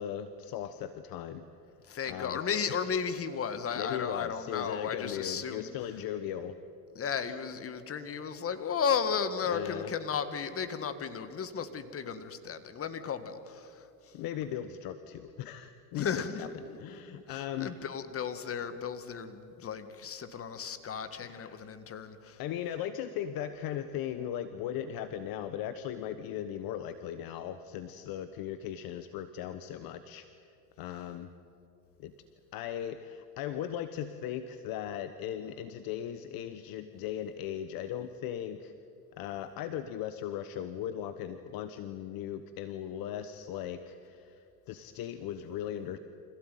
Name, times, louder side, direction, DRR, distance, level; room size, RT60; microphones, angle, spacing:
voice 1, 0.0-1.4 2.1-2.4 2.7-2.8 3.7-6.6 9.5-9.9 14.1-16.5 16.8-17.7 21.2-21.7 22.4-30.3 30.8-31.3 32.0-32.1 32.5-38.7 39.2-46.0, left 10 dB, 50° left, 11 dB, 1.2 m, -38 dB
voice 2, 1.8-5.7 7.0-14.2 15.9-22.4, left 6 dB, 30° left, 11 dB, 1.9 m, -35 dB
25.5 x 16.5 x 9.3 m, 2.6 s
supercardioid pair, 105°, 46 cm